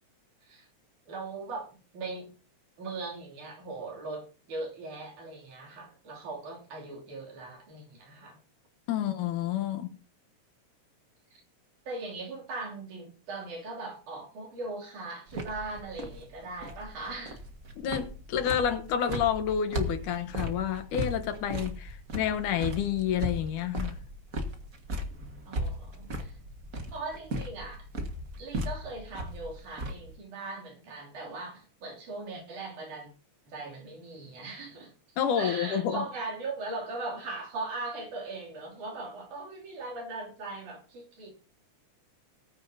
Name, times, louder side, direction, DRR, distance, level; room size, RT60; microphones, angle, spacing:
voice 1, 1.1-2.3 2.8-8.4 11.3-11.4 11.9-17.4 25.5-26.4 26.9-27.9 28.4-33.1 33.5-34.9 35.3-41.3, right 3 dB, 75° right, 4.4 m, -39 dB
voice 2, 8.9-10.0 17.8-24.0 35.2-36.1, left 9 dB, 85° left, 2.7 m, -29 dB
sound 1, 15.3-30.2, equal, 35° right, 1.5 m, -37 dB
19.0 x 9.4 x 2.8 m
omnidirectional pair, 3.5 m